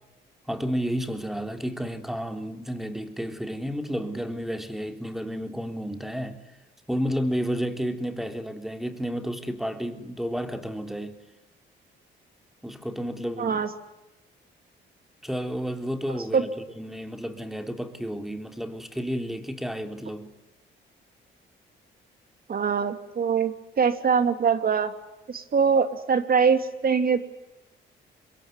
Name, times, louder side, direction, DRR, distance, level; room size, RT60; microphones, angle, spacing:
voice 1, 0.5-6.4 6.9-11.2 12.6-13.7 15.2-20.3, equal, ahead, 7 dB, 3.5 m, -31 dB
voice 2, 13.4-13.7 16.3-16.4 22.5-24.9 25.3-27.2, right 6 dB, 50° right, 9 dB, 2.9 m, -23 dB
26.0 x 22.0 x 9.8 m, 0.99 s
cardioid pair, 90°, 20 cm